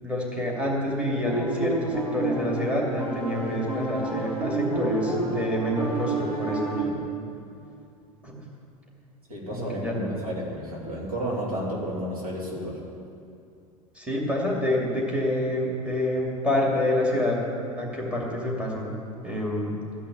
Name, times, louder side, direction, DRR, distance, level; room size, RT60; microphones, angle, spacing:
voice 1, 0.0-7.1 8.2-8.4 9.5-10.1 13.9-17.4 17.7-18.9 19.2-19.8, left 1 dB, 5° right, -3 dB, 2.5 m, -27 dB
sound 1, 1.2-6.8, right 3 dB, 90° right, 2.0 m, -29 dB
voice 2, 9.3-12.8, equal, 70° right, -5 dB, 3.0 m, -32 dB
14.5 x 5.7 x 8.4 m, 2.5 s
figure-of-eight pair, 80°, 19 cm